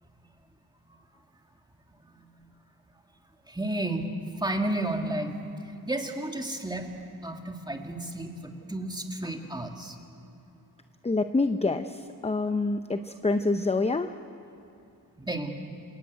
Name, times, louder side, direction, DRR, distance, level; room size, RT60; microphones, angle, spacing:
voice 1, 3.5-4.1 4.4-5.4 5.9-10.0 15.2-15.5, right 1 dB, 10° right, 3 dB, 2.2 m, -32 dB
voice 2, 11.0-14.1, left 3 dB, 15° left, 9 dB, 0.6 m, -27 dB
27.5 x 16.5 x 9.4 m, 2.7 s
wide cardioid pair, 120°, 37 cm